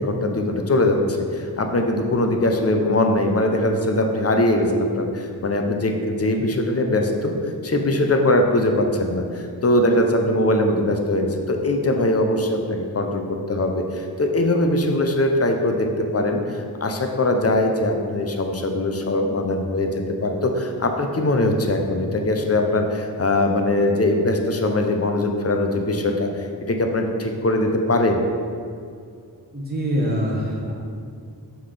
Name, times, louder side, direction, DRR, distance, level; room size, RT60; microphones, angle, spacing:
voice 1, 0.0-7.3 7.6-28.2, left 1 dB, 40° left, 4 dB, 0.6 m, -21 dB
voice 2, 29.5-30.7, equal, 25° right, -3 dB, 0.9 m, -24 dB
5.8 x 5.6 x 3.3 m, 2.3 s
wide cardioid pair, 90°, 40 cm